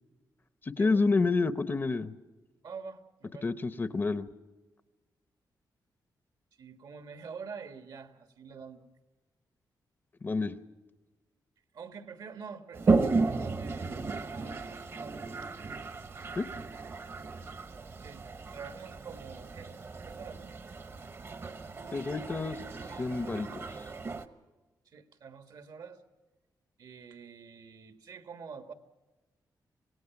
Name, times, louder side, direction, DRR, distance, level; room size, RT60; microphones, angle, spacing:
voice 1, 0.6-2.1 3.4-4.3 10.2-10.6 16.4-16.5 21.9-22.7 23.0-23.8, left 3 dB, 30° left, 13 dB, 0.7 m, -29 dB
voice 2, 2.6-3.5 6.6-8.9 11.7-15.3 18.0-18.2 18.5-19.8 20.0-20.6 24.8-26.0 26.8-28.7, right 5 dB, 70° right, 8 dB, 1.6 m, -46 dB
Toilet flush, 12.7-24.2, right 3 dB, 35° right, 1.0 m, -34 dB
26.5 x 18.0 x 5.9 m, 1.2 s
wide cardioid pair, 145°, 7 cm